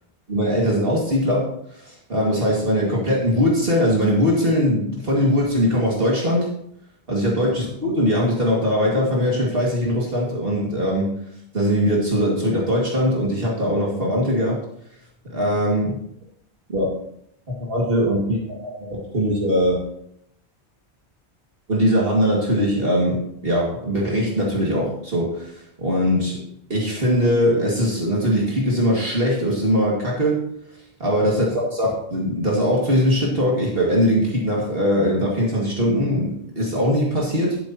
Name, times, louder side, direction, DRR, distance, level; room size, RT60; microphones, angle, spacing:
voice 1, 0.3-6.5 7.1-11.1 11.5-14.6 15.3-16.0 16.7-16.9 17.6-19.8 21.7-26.4 26.7-30.5 31.0-37.6, equal, 60° right, -3 dB, 2.3 m, -21 dB
11.5 x 8.3 x 2.9 m, 0.72 s
omnidirectional pair, 1.1 m